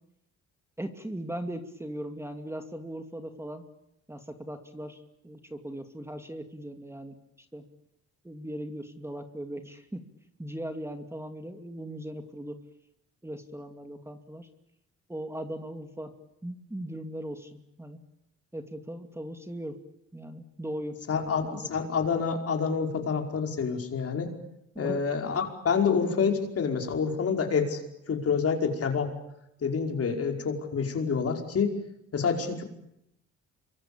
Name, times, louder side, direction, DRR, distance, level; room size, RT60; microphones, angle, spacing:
voice 1, 0.8-3.6 4.1-7.2 7.5-7.6 8.2-10.0 10.4-12.5 13.2-14.5 15.1-16.1 16.4-18.0 18.5-19.8 20.1-21.7 24.7-25.0, right 1 dB, 10° right, 6 dB, 2.6 m, -39 dB
voice 2, 21.1-24.3 24.8-29.1 29.6-31.8 32.1-32.6, left 6 dB, 50° left, 3 dB, 5.2 m, -28 dB
27.0 x 24.0 x 8.8 m, 0.80 s
cardioid pair, 90°, 30 cm